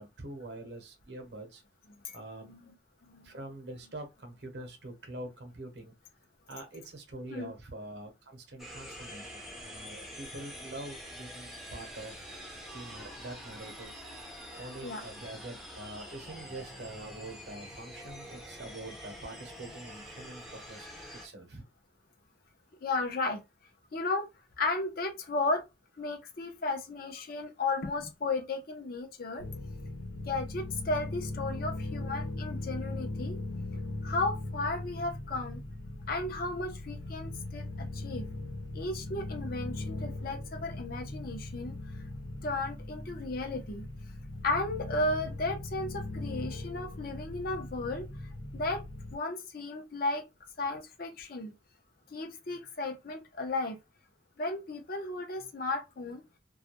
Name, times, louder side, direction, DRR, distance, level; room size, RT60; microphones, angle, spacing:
voice 1, 0.0-1.6 2.1-2.5 3.2-5.9 6.5-12.3 12.7-13.9 14.6-20.9 21.1-21.6, right 2 dB, 60° right, 0.8 m, -45 dB
sound 1, 8.6-21.3, equal, ahead, 0.5 m, -46 dB
voice 2, 22.8-23.4 23.9-24.3 24.6-25.7 26.0-29.4 30.3-33.4 33.7-35.6 36.1-38.3 38.7-42.0 42.4-44.2 44.4-48.8 49.1-50.3 50.6-51.5 52.1-53.8 54.4-56.2, left 2 dB, 50° left, 0.6 m, -34 dB
sound 2, 29.4-49.2, left 2 dB, 80° left, 0.9 m, -39 dB
2.3 x 2.1 x 2.9 m
head